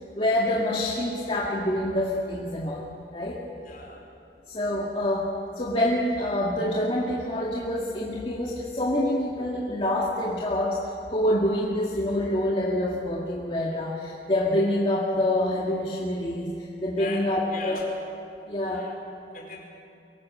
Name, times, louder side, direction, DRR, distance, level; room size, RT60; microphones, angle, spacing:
voice 1, 0.1-2.9 3.1-3.4 4.5-17.9 18.5-18.9, left 1 dB, 30° left, -4 dB, 2.0 m, -26 dB
voice 2, 3.6-4.1 17.0-17.9 18.6-19.0 19.3-19.6, left 2 dB, 55° left, -1 dB, 4.8 m, -39 dB
23.5 x 18.0 x 7.6 m, 2.7 s
head